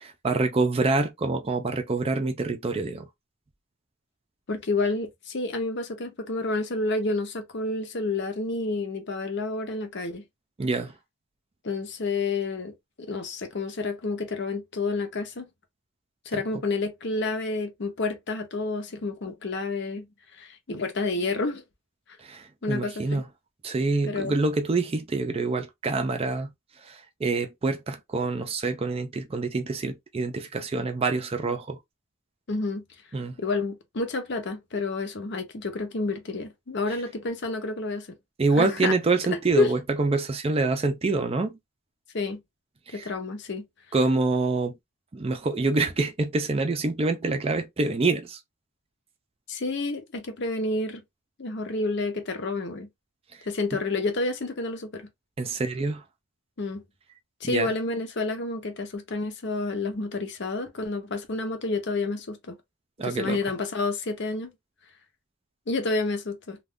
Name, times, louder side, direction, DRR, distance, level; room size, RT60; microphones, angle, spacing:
voice 1, 0.2-3.1 10.6-10.9 22.2-23.2 23.6-26.5 26.9-31.8 33.1-33.3 38.4-41.6 42.9-43.1 43.9-44.7 45.1-48.4 55.4-56.0 57.4-57.7 63.0-63.4, right 3 dB, 25° right, 0.4 m, -26 dB
voice 2, 4.5-10.2 11.6-15.5 16.3-20.1 20.4-21.6 22.6-23.2 24.1-24.3 32.5-32.8 33.4-38.2 38.6-38.9 39.6-39.7 42.1-42.4 42.9-43.7 49.5-51.0 51.4-52.9 53.4-55.1 56.6-56.8 57.4-62.6 63.0-64.5 65.7-66.6, left 3 dB, 55° left, 0.7 m, -29 dB
2.4 x 2.3 x 3.5 m
head